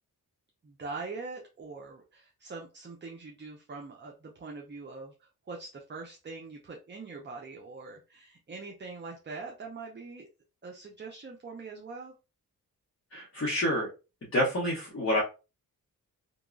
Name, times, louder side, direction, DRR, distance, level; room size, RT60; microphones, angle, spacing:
voice 1, 0.6-10.3 10.6-12.1, right 4 dB, 30° right, 1 dB, 0.5 m, -43 dB
voice 2, 13.1-13.9 14.3-15.2, left 1 dB, 35° left, -5 dB, 0.9 m, -28 dB
2.9 x 2.3 x 2.4 m, 0.30 s
cardioid pair, 80°, 36 cm